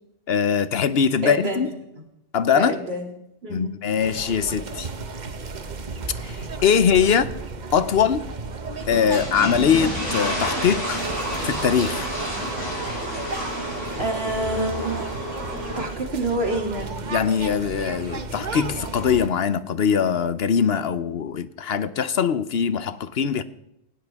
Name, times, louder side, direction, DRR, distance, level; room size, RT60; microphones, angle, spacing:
voice 1, 0.3-1.7 2.3-2.8 3.5-4.9 6.2-7.3 7.7-8.2 8.9-11.0 11.4-12.1 17.1-23.4, left 7 dB, 65° left, 14 dB, 1.0 m, -22 dB
voice 2, 1.2-1.6 2.5-3.1 3.4-3.8 14.0-15.0 15.8-16.9, right 1 dB, 65° right, 1 dB, 3.1 m, -27 dB
sound 1, 4.0-19.3, right 3 dB, 45° right, 1.0 m, -34 dB
sound 2, 8.8-15.8, equal, 25° left, 7.2 m, -30 dB
19.0 x 16.5 x 3.6 m, 0.81 s
omnidirectional pair, 1.1 m